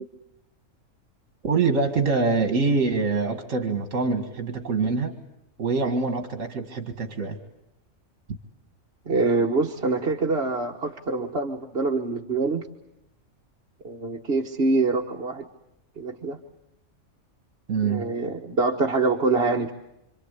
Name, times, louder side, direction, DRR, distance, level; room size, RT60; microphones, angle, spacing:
voice 1, 1.4-5.1 5.6-7.4 17.7-18.1, right 4 dB, 70° right, 5 dB, 2.1 m, -24 dB
voice 2, 9.1-12.6 13.8-15.5 16.0-16.4 17.8-19.7, right 3 dB, 50° right, 2 dB, 1.6 m, -25 dB
27.5 x 26.0 x 8.3 m, 0.87 s
omnidirectional pair, 1.4 m